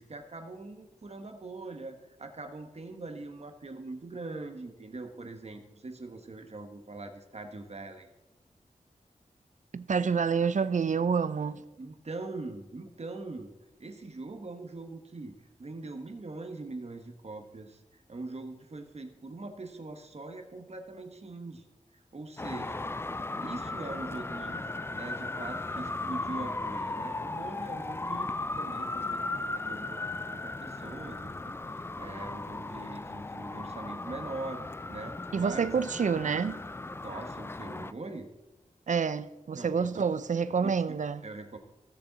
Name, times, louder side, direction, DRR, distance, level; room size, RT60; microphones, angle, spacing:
voice 1, 0.0-8.1 11.8-13.5 13.8-21.6 21.9-22.9 23.4-30.0 30.3-35.7 37.0-38.3 39.5-40.1 40.6-41.0 41.2-41.6, right 2 dB, 50° right, 1.2 m, -42 dB
voice 2, 9.7-11.6 35.3-36.6 38.9-41.2, right 6 dB, 65° right, 0.5 m, -28 dB
Traffic noise roadway noise, 22.4-37.9, left 2 dB, 20° left, 0.3 m, -36 dB
16.5 x 6.6 x 4.0 m
wide cardioid pair, 95°, 14 cm